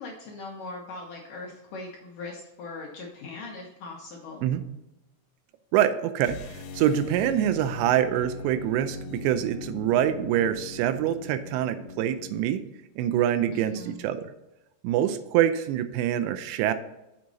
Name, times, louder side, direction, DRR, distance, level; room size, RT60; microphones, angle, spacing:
voice 1, 0.0-4.5 13.5-14.0, left 3 dB, 65° left, -1 dB, 2.2 m, -40 dB
voice 2, 5.7-12.6 13.0-14.3 14.8-16.7, right 11 dB, 85° right, 11 dB, 2.8 m, -25 dB
sound 1, 6.2-12.5, left 4 dB, 85° left, 3.1 m, -40 dB
7.4 x 6.2 x 4.0 m, 0.93 s
omnidirectional pair, 5.2 m